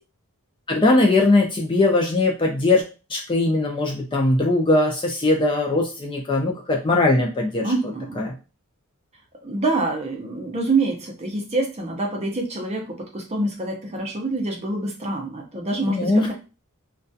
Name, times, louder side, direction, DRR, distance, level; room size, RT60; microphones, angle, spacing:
voice 1, 0.7-2.8 3.1-7.7 8.2-8.3 15.8-16.3, left 2 dB, 20° left, 0 dB, 0.4 m, -20 dB
voice 2, 7.6-8.2 9.4-16.3, right 2 dB, 30° right, 1 dB, 0.5 m, -26 dB
2.3 x 2.2 x 2.6 m, 0.32 s
head